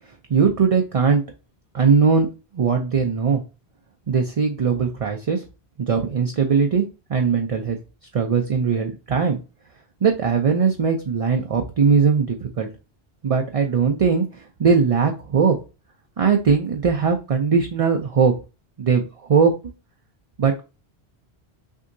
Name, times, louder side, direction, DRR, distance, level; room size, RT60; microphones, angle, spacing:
voice 1, 0.1-1.2 1.7-2.3 2.5-3.4 4.1-5.4 5.8-6.8 7.1-7.8 8.1-9.4 10.0-12.7 13.2-15.6 16.2-18.3 18.8-19.0 19.3-19.5 20.4-20.5, right 5 dB, 45° right, 3 dB, 0.5 m, -20 dB
6.1 x 2.7 x 2.6 m, 0.31 s
omnidirectional pair, 1.1 m